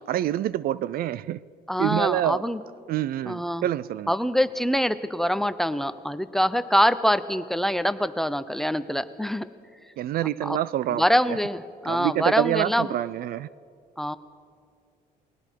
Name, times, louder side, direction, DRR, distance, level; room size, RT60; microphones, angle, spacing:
voice 1, 0.1-1.4 1.8-2.4 2.9-4.1 10.0-11.0 11.8-13.5, right 13 dB, 60° right, 0.4 m, -26 dB
voice 2, 1.7-2.6 3.2-3.7 4.1-9.5 10.4-10.6 10.9-12.9 14.0-14.2, equal, ahead, 0.7 m, -24 dB
29.0 x 20.5 x 4.6 m
cardioid pair, 110°, 17 cm